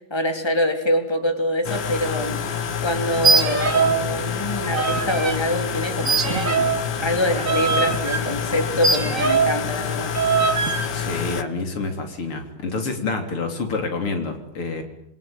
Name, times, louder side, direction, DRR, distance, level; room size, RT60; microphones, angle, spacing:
voice 1, 0.1-2.4 2.8-6.7 7.0-10.5, left 1 dB, 10° left, 6 dB, 3.3 m, -25 dB
sound 1, 1.6-11.4, left 7 dB, 65° left, 2.1 m, -28 dB
sound 2, 3.2-4.1 4.3-5.4 6.0-9.6 10.1-10.9, right 4 dB, 40° right, 2.3 m, -22 dB
voice 2, 10.9-14.8, left 3 dB, 90° left, 5 dB, 4.4 m, -28 dB
26.5 x 23.5 x 9.1 m, 0.75 s
omnidirectional pair, 2.3 m